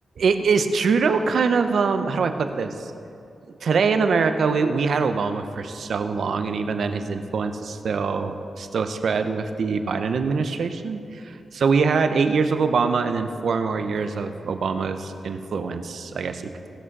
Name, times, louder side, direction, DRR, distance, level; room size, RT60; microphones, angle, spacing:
voice 1, 0.2-2.9 3.6-16.7, right 5 dB, 75° right, 8 dB, 0.7 m, -23 dB
18.0 x 6.2 x 5.4 m, 2.6 s
cardioid pair, 60°, 0 cm